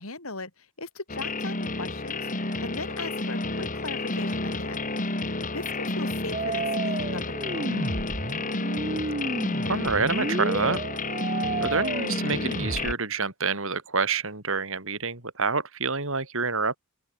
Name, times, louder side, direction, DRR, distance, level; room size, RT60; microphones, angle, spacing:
voice 1, 0.0-2.3 2.6-4.9 5.5-7.8, left 3 dB, 65° left, 5.2 m, -38 dB
sound 1, 1.1-12.9, left 2 dB, 40° left, 4.8 m, -30 dB
sound 2, 6.3-12.9, right 3 dB, 35° right, 1.1 m, -32 dB
voice 2, 9.6-10.8 11.6-16.8, right 4 dB, 65° right, 6.5 m, -27 dB
open air
head